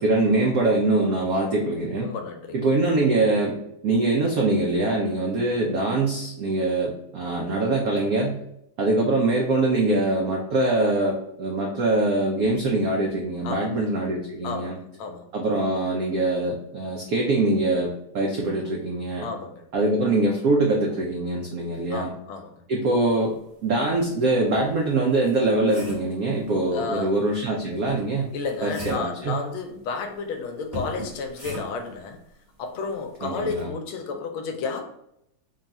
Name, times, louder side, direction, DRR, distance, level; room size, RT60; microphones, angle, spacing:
voice 1, 0.0-2.1 2.5-3.6 3.8-8.4 8.8-14.8 15.3-19.3 19.7-22.1 22.7-23.3 23.6-28.3 28.6-29.4 33.2-33.7, right 2 dB, 85° right, 0 dB, 0.7 m, -23 dB
voice 2, 2.0-2.6 13.4-13.9 14.4-15.2 19.2-19.6 21.9-22.5 26.7-27.1 28.3-32.2 32.6-34.9, left 4 dB, 85° left, 5 dB, 1.4 m, -32 dB
sound 1, 23.9-24.0 24.5-26.2 27.9-29.2 30.7-31.9 33.5-33.7, equal, 20° right, 1.2 m, -38 dB
3.7 x 2.3 x 4.0 m, 0.78 s
omnidirectional pair, 2.2 m